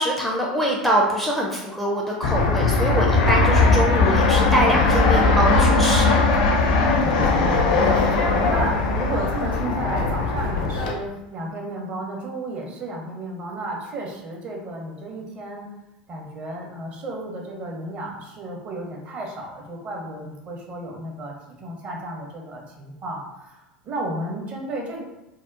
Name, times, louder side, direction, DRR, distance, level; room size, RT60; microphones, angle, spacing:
voice 1, 0.0-6.2, equal, ahead, -2 dB, 0.4 m, -24 dB
Fixed-wing aircraft airplane, 2.2-10.9, left 3 dB, 60° left, 0.5 m, -19 dB
voice 2, 7.0-15.7 16.1-25.0, right 1 dB, 35° right, -1 dB, 0.7 m, -33 dB
2.8 x 2.0 x 2.4 m, 0.98 s
figure-of-eight pair, 80°, 4 cm